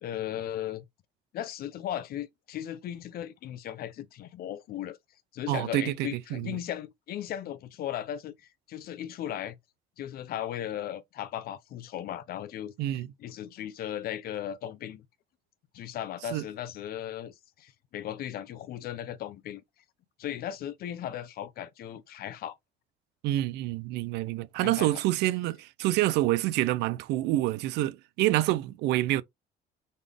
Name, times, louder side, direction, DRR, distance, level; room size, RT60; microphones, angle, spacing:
voice 1, 0.0-0.8 1.3-5.0 5.3-8.4 8.7-9.6 10.0-15.0 15.7-19.6 20.2-22.5 24.6-25.0, left 11 dB, 65° left, 0.7 m, -37 dB
voice 2, 5.5-6.6 12.8-13.1 16.3-16.4 23.2-29.2, right 15 dB, 85° right, 0.4 m, -27 dB
4.0 x 3.5 x 3.3 m
cardioid pair, 110°, 17 cm